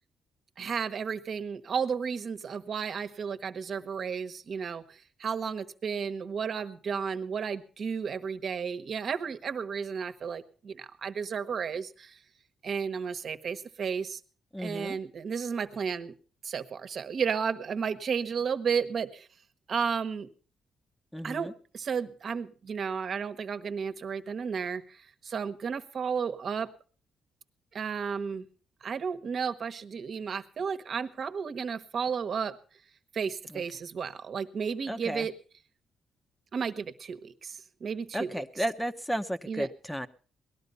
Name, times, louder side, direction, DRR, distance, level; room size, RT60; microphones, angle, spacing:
voice 1, 0.6-12.2 12.6-14.2 14.6-16.1 16.4-19.3 19.7-20.3 21.2-26.7 27.7-28.5 28.8-32.5 33.1-35.3 36.5-38.4 39.5-39.7, right 6 dB, 55° right, 10 dB, 1.2 m, -33 dB
voice 2, 14.5-15.0 21.1-21.5 33.5-33.6 34.9-35.3 38.1-40.1, equal, 5° left, 9 dB, 0.8 m, -33 dB
18.5 x 12.5 x 5.5 m, 0.42 s
cardioid pair, 90°, 0 cm